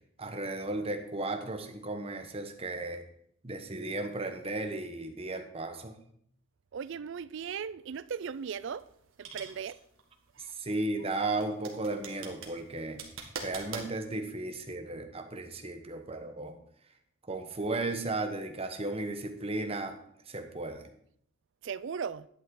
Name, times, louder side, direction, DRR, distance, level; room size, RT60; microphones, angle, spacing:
voice 1, 0.2-3.0 3.4-6.0 10.6-13.0 13.4-16.5 17.3-20.0 20.3-20.9, right 2 dB, 30° right, 1.0 m, -35 dB
voice 2, 6.7-8.9 9.2-9.8 21.6-22.3, right 6 dB, 60° right, 0.4 m, -37 dB
sound 1, 8.2-13.9, right 5 dB, 75° right, 1.7 m, -44 dB
11.0 x 8.8 x 3.8 m
head